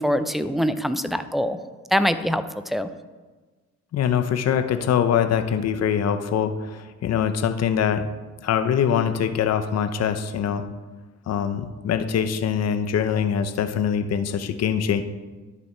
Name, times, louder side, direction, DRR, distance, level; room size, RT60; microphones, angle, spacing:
voice 1, 0.0-1.6 1.9-2.9, equal, ahead, 10 dB, 0.5 m, -24 dB
voice 2, 3.9-8.1 8.4-10.6 11.3-15.0, left 8 dB, 55° left, 9 dB, 0.8 m, -23 dB
10.5 x 7.0 x 4.4 m, 1.3 s
cardioid pair, 90°, 30 cm